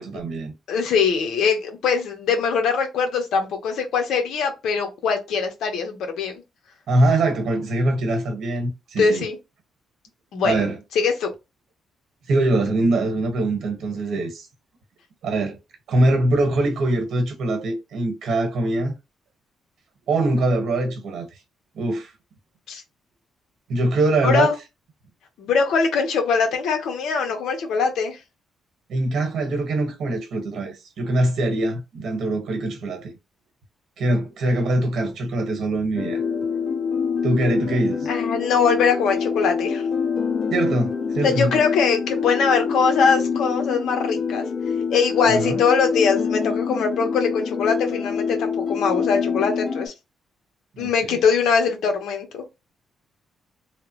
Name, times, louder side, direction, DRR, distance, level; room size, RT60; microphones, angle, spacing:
voice 1, 0.0-0.5 6.9-9.2 10.4-10.8 12.3-14.5 15.2-15.6 15.9-18.9 20.1-21.2 21.7-22.1 23.7-24.5 28.9-33.1 34.0-36.2 37.2-38.1 40.5-41.6 45.2-45.6 50.7-51.2, right 2 dB, 70° right, 1.1 m, -23 dB
voice 2, 0.7-6.4 9.0-9.4 10.3-10.6 10.9-11.3 22.7-22.8 24.2-24.5 25.4-28.2 34.5-34.6 38.1-39.9 41.2-44.4 44.9-49.9 50.8-52.4, left 5 dB, 80° left, 0.9 m, -22 dB
sound 1, 36.0-49.9, left 6 dB, 50° left, 0.7 m, -26 dB
3.3 x 2.0 x 2.9 m
cardioid pair, 130°, 0 cm